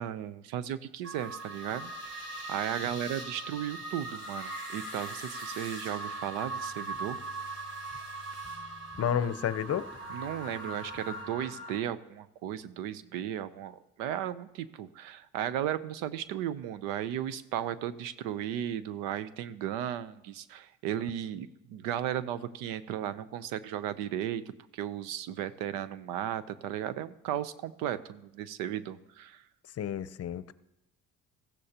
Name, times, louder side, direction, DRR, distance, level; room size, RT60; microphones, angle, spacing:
voice 1, 0.0-1.9 2.5-7.2 10.1-24.4 24.7-29.4, right 10 dB, 85° right, 15 dB, 0.7 m, -35 dB
sound 1, 1.0-11.8, right 2 dB, 50° right, 4.1 m, -40 dB
sound 2, 6.2-11.4, left 4 dB, 15° right, 4.1 m, -55 dB
voice 2, 9.0-9.9 29.8-30.5, left 9 dB, 45° left, 15 dB, 0.7 m, -30 dB
20.0 x 15.0 x 2.9 m, 0.88 s
supercardioid pair, 75°, 33 cm